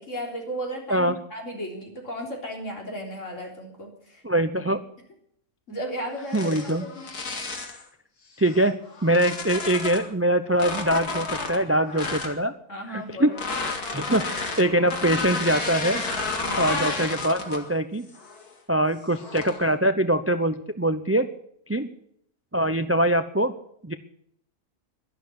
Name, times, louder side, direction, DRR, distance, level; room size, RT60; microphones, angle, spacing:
voice 1, 0.0-4.2 5.7-7.0 12.7-13.4 16.4-16.7, equal, 55° left, 1 dB, 4.0 m, -35 dB
voice 2, 4.2-4.8 6.3-6.9 8.4-8.8 9.0-12.5 12.9-13.3 13.9-14.2 14.6-16.0 16.6-18.1 18.7-21.3 21.7-21.9 22.5-23.5 23.8-23.9, right 1 dB, 20° right, 11 dB, 0.3 m, -23 dB
sound 1, 6.2-7.8 8.5-10.1 10.5-12.4 13.3-17.7 18.1-18.5 19.1-19.6, left 3 dB, 85° left, 2.6 m, -31 dB
12.0 x 12.0 x 9.8 m, 0.70 s
omnidirectional pair, 1.6 m